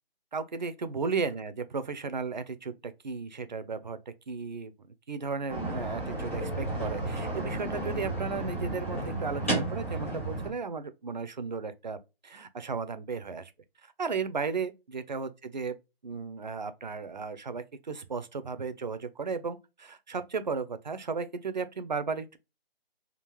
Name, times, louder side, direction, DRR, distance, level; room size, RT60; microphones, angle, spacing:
voice 1, 0.3-4.7 5.1-12.0 12.2-13.5 13.8-15.8 16.0-22.4, right 5 dB, 45° right, 0.4 m, -35 dB
sound 1, 5.5-10.5, right 2 dB, 15° left, 0.6 m, -32 dB
3.6 x 2.4 x 3.0 m
figure-of-eight pair, 155°, 31 cm